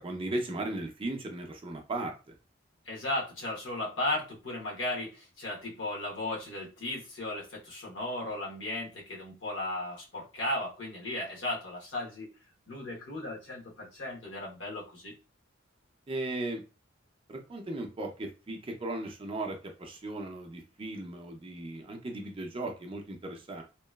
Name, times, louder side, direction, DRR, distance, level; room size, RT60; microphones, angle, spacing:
voice 1, 0.0-2.3 16.1-16.6 17.3-23.6, right 2 dB, 25° right, 3 dB, 0.5 m, -37 dB
voice 2, 2.8-12.3 12.7-15.1, left 1 dB, 65° left, -3 dB, 1.1 m, -35 dB
2.9 x 2.3 x 2.2 m, 0.32 s
head